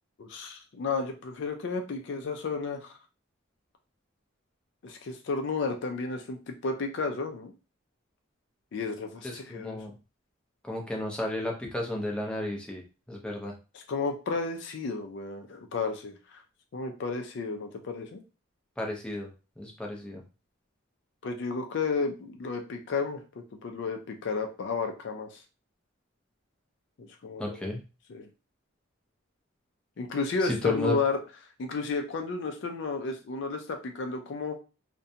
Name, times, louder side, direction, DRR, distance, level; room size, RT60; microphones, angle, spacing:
voice 1, 0.2-3.0 4.8-7.5 8.7-9.8 13.7-16.4 16.7-18.2 21.2-25.4 27.0-27.7 28.1-28.3 30.0-31.2 31.6-34.6, left 4 dB, 60° left, 4 dB, 0.4 m, -32 dB
voice 2, 9.2-9.9 10.6-12.8 13.1-13.5 18.8-19.3 19.6-20.2 27.4-27.8 30.4-30.9, left 1 dB, 5° left, -1 dB, 0.5 m, -33 dB
2.5 x 2.1 x 2.7 m, 0.32 s
head